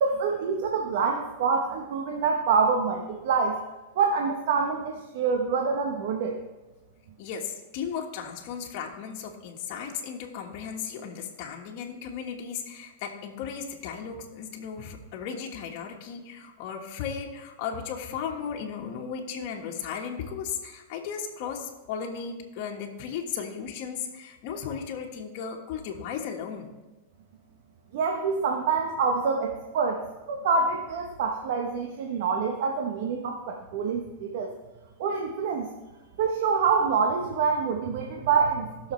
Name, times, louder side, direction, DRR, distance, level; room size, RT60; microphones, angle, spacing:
voice 1, 0.0-3.6 4.0-6.4 27.9-30.0 30.3-34.5 35.0-35.7 36.2-38.9, right 5 dB, 65° right, 2 dB, 1.0 m, -26 dB
voice 2, 7.2-26.7, left 7 dB, 55° left, 0 dB, 1.5 m, -35 dB
17.0 x 6.4 x 3.2 m, 1.1 s
supercardioid pair, 130°, 0 cm